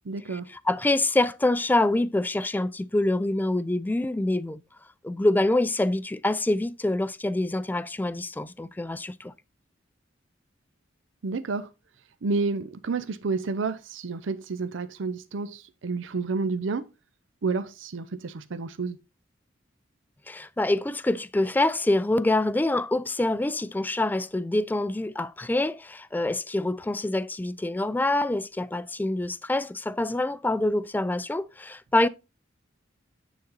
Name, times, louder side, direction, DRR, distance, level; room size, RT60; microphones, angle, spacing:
voice 1, 0.1-0.5 11.2-11.7 12.2-16.9 17.4-19.0, right 4 dB, 75° right, 0.6 m, -30 dB
voice 2, 0.7-4.6 5.0-9.3 20.3-32.1, left 2 dB, 10° left, 0.3 m, -26 dB
9.3 x 4.0 x 3.9 m
head